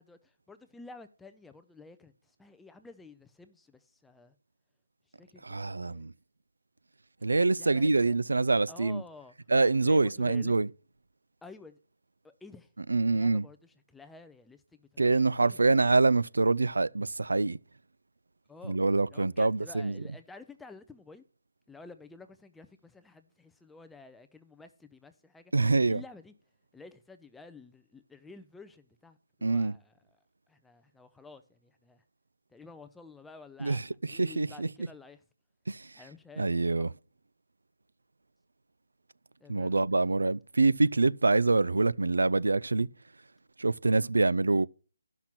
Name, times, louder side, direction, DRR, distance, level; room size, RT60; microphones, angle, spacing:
voice 1, 0.0-4.4 5.2-6.0 7.4-8.2 8.7-9.3 9.8-10.6 11.4-11.8 12.2-12.7 13.0-15.9 18.5-18.8 19.1-21.2 21.7-25.5 25.8-26.3 26.7-29.9 30.5-32.0 32.5-33.8 34.1-35.2 35.9-36.9 39.4-40.1, left 3 dB, 5° left, 0.4 m, -51 dB
voice 2, 5.4-6.1 7.2-9.0 9.5-10.7 12.9-13.4 15.0-17.6 18.7-20.0 25.5-26.0 29.4-29.7 33.6-33.8 34.1-34.7 35.7-35.9 36.4-36.9 39.5-42.9 43.6-44.7, right 3 dB, 85° right, 0.4 m, -25 dB
10.5 x 5.9 x 5.9 m
hypercardioid pair, 165°, 0 cm